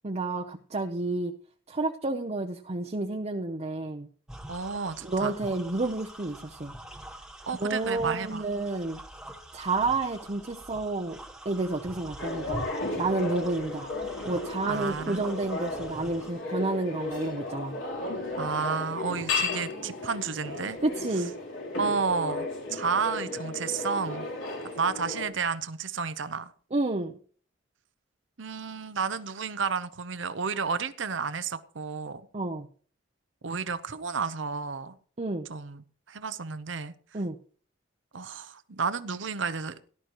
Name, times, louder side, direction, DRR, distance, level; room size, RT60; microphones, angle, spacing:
voice 1, 0.0-1.3 1.7-4.1 5.0-6.7 7.6-9.0 9.5-12.7 13.0-13.9 14.2-17.8 20.8-21.3 26.7-27.2 32.3-32.7 35.2-35.5 37.1-37.4, right 2 dB, 35° right, 0.7 m, -30 dB
sound 1, 4.3-16.3, right 1 dB, 5° right, 1.3 m, -45 dB
voice 2, 4.5-5.3 7.5-8.4 14.7-15.2 18.4-20.8 21.8-24.2 24.8-26.5 28.4-32.2 33.4-34.9 35.5-35.8 36.1-36.9 38.1-39.9, right 5 dB, 75° right, 0.8 m, -31 dB
sound 2, 12.2-25.3, left 3 dB, 90° left, 3.5 m, -34 dB
18.0 x 12.0 x 3.0 m
head